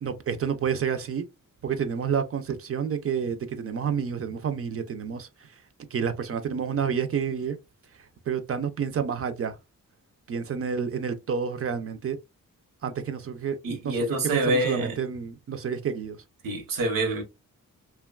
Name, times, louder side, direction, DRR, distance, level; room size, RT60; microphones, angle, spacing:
voice 1, 0.0-1.3 1.6-5.6 5.9-7.6 8.0-9.6 10.3-12.2 12.8-14.0 14.3-16.2, right 7 dB, 45° right, 0.4 m, -29 dB
voice 2, 13.6-15.0 16.4-17.2, right 1 dB, 85° right, 0.9 m, -26 dB
2.8 x 2.2 x 2.2 m
wide cardioid pair, 115°, 33 cm